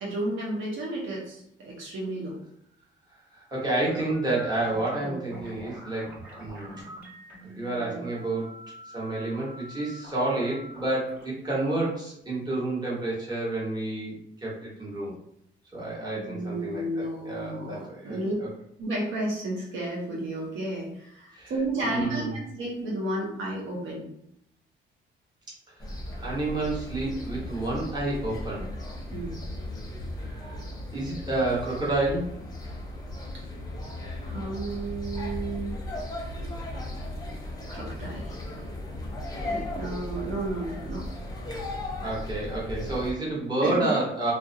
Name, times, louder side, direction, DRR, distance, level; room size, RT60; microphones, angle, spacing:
voice 1, 0.0-2.4 5.0-5.5 7.9-8.0 16.2-18.3 18.8-24.1 29.1-29.4 33.3-33.4 34.2-35.7 37.7-38.3 39.4-41.1 43.6-43.9, right 2 dB, 80° right, -3 dB, 0.8 m, -32 dB
voice 2, 3.5-6.8 7.4-8.5 8.9-15.1 15.7-18.2 21.3-21.5 21.8-22.3 26.2-28.7 30.2-30.6 30.9-32.3 42.0-44.3, right 2 dB, 20° right, -6 dB, 1.1 m, -29 dB
sound 1, 3.8-12.8, equal, 45° right, 1.2 m, -46 dB
Ribe towncenter, 25.8-43.1, left 1 dB, 20° left, 0.6 m, -36 dB
2.3 x 2.1 x 2.7 m, 0.74 s
cardioid pair, 90°, 20 cm